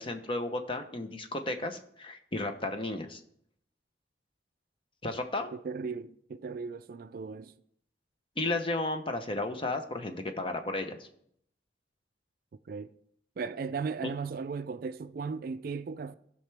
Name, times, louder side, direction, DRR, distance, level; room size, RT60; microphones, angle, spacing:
voice 1, 0.0-3.2 5.0-5.5 8.4-11.1, left 2 dB, 30° left, 0.8 m, -33 dB
voice 2, 5.5-7.5 12.7-12.9 13.4-16.2, right 5 dB, 50° right, 0.3 m, -36 dB
15.5 x 5.7 x 3.4 m
head